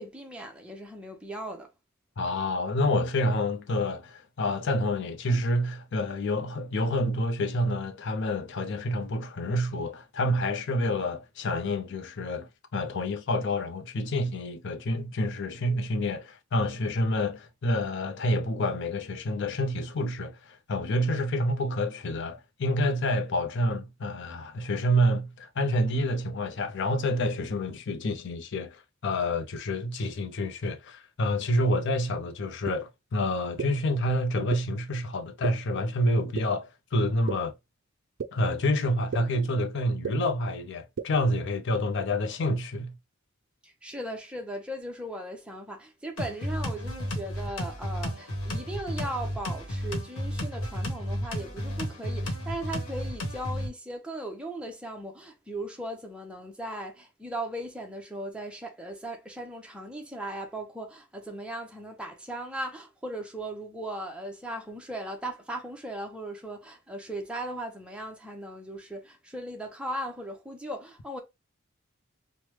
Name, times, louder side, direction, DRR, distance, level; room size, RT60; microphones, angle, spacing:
voice 1, 0.0-1.7 43.6-71.2, right 1 dB, 5° right, 0.6 m, -38 dB
voice 2, 2.2-37.5 38.3-43.0, left 1 dB, 60° left, 0.5 m, -28 dB
sound 1, 32.7-32.8 33.6-33.7 34.5-34.6 35.4-35.5 36.3-36.4 37.3-37.4 38.2-38.3 39.1-39.2 40.0-40.1 41.0-41.1, right 6 dB, 60° right, 0.4 m, -30 dB
sound 2, 46.2-53.7, equal, 85° left, 1.0 m, -33 dB
3.2 x 2.1 x 3.0 m
head